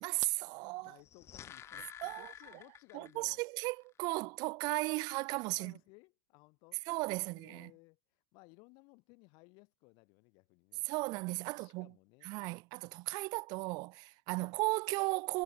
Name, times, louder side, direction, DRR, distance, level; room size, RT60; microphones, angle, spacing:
voice 1, 0.0-1.0 2.0-2.3 2.9-5.7 6.9-7.7 10.9-11.9 12.2-15.4, right 25 dB, 55° right, 0.7 m, -36 dB
voice 2, 0.8-3.4 5.5-6.9 7.2-10.8 11.5-12.3 14.4-14.6, left 30 dB, 60° left, 2.4 m, -61 dB
sound 1, 0.9-3.4 3.6-3.7, left 10 dB, 35° left, 2.6 m, -50 dB
supercardioid pair, 115°, 8 cm